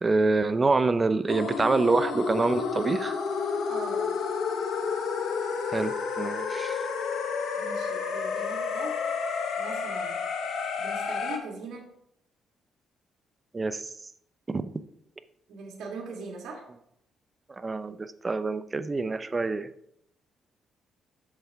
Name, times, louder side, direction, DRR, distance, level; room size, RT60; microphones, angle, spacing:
voice 1, 0.0-3.2 5.7-6.9 13.5-13.9 14.5-14.6 17.6-19.7, right 3 dB, 25° right, 12 dB, 0.5 m, -26 dB
sound 1, 1.3-11.4, left 5 dB, 75° left, 1.1 m, -30 dB
voice 2, 3.7-4.0 7.6-8.9 9.6-10.2 10.8-11.9 15.5-16.7, right 3 dB, 70° right, 0 dB, 1.8 m, -40 dB
8.0 x 6.9 x 3.5 m, 0.73 s
cardioid pair, 90°, 0 cm